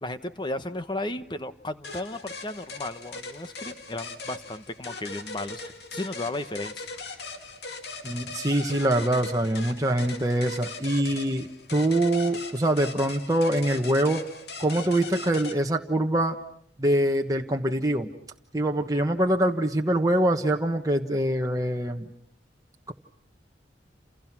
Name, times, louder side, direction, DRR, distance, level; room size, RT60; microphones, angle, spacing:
voice 1, 0.0-7.0, left 2 dB, 25° left, 10 dB, 1.2 m, -34 dB
sound 1, 1.8-15.5, left 3 dB, 65° left, 2.4 m, -40 dB
voice 2, 8.0-14.3 14.6-16.4 16.8-18.1 18.5-22.1 22.9-23.0, right 1 dB, 20° right, 2 dB, 1.3 m, -24 dB
29.0 x 28.5 x 6.1 m, 0.68 s
head